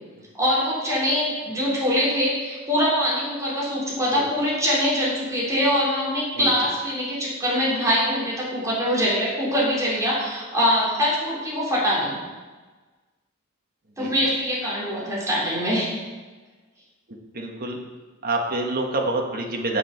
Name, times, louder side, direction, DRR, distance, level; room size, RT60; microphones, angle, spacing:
voice 1, 0.4-12.2 14.0-15.9, equal, 15° right, -7 dB, 3.6 m, -23 dB
voice 2, 17.1-17.8 18.2-19.8, right 2 dB, 45° right, 1 dB, 1.4 m, -27 dB
9.3 x 7.1 x 5.8 m, 1.3 s
head